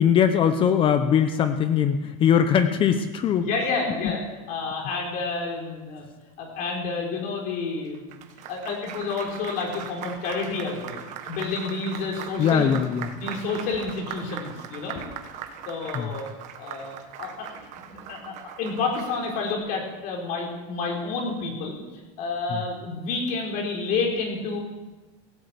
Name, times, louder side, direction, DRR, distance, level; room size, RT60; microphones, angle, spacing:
voice 1, 0.0-3.5 4.0-4.1 12.4-13.1 15.9-16.1 22.5-22.6, left 8 dB, 30° left, 9 dB, 0.9 m, -21 dB
voice 2, 3.4-4.2 4.5-6.0 6.4-12.7 13.1-15.0 15.7-16.3 16.6-21.8 22.2-24.6, left 4 dB, 50° left, 0 dB, 4.5 m, -30 dB
Applause, 7.8-19.5, right 9 dB, 45° right, 1.4 m, -40 dB
17.0 x 8.6 x 8.5 m, 1.2 s
supercardioid pair, 155°, 18 cm